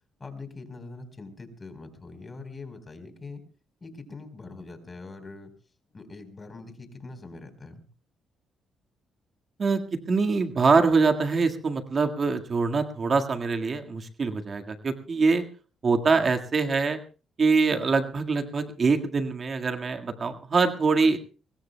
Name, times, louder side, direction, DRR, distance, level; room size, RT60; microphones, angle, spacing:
voice 1, 0.2-3.4 3.8-5.5 5.9-7.8, left 3 dB, 30° left, 8 dB, 4.2 m, -43 dB
voice 2, 10.1-15.4 15.8-17.0 17.4-21.2, right 4 dB, 40° right, 5 dB, 1.8 m, -24 dB
24.0 x 21.0 x 2.3 m, 0.36 s
cardioid pair, 90°, 0 cm